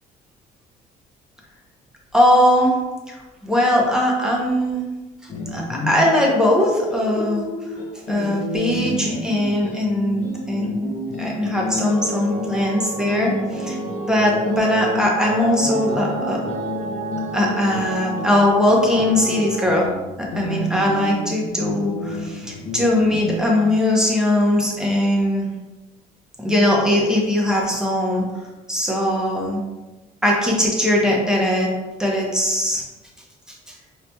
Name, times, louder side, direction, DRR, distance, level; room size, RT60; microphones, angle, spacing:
voice 1, 2.1-2.8 3.1-3.2 3.4-4.9 5.2-7.4 8.1-16.4 17.3-19.9 20.3-25.5 26.4-28.2 28.7-29.6 30.2-31.7 32.0-32.8, left 1 dB, 5° right, -2 dB, 0.8 m, -20 dB
sound 1, 5.3-23.7, left 2 dB, 40° left, 0.5 m, -30 dB
sound 2, 11.9-19.7, right 5 dB, 45° right, 0.5 m, -32 dB
4.0 x 2.8 x 2.2 m, 1.1 s
cardioid pair, 110°, 17 cm